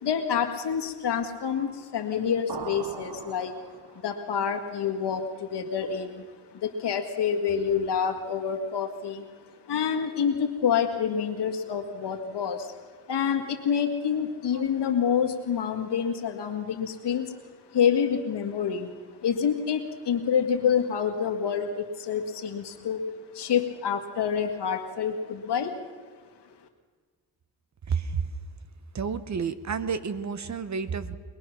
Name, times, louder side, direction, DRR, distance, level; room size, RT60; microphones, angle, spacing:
voice 1, 0.0-3.6 4.0-9.3 9.6-12.7 13.1-17.4 17.7-23.0 23.3-25.8, left 7 dB, 80° left, 5 dB, 1.9 m, -27 dB
sound 1, 2.5-4.2, right 6 dB, 75° right, 1.4 m, -40 dB
voice 2, 27.9-28.3 28.9-31.2, right 6 dB, 45° right, 12 dB, 1.0 m, -30 dB
22.5 x 20.5 x 6.0 m, 1.5 s
wide cardioid pair, 130°, 40 cm